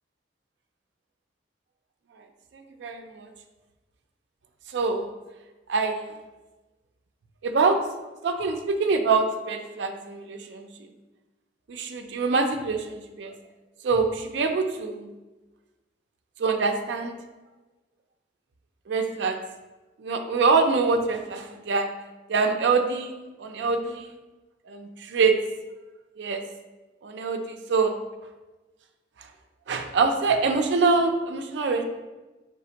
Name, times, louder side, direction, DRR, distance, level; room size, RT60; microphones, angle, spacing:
voice 1, 2.5-3.3 4.7-5.1 5.7-6.1 7.4-7.8 8.2-10.7 11.7-13.3 13.8-15.1 16.4-17.2 18.9-19.4 20.0-21.9 22.3-24.1 24.7-25.4 26.2-26.4 27.0-28.0 29.2-29.3 29.7-31.8, right 4 dB, 70° right, 5 dB, 0.4 m, -25 dB
4.1 x 3.4 x 2.8 m, 1.1 s
head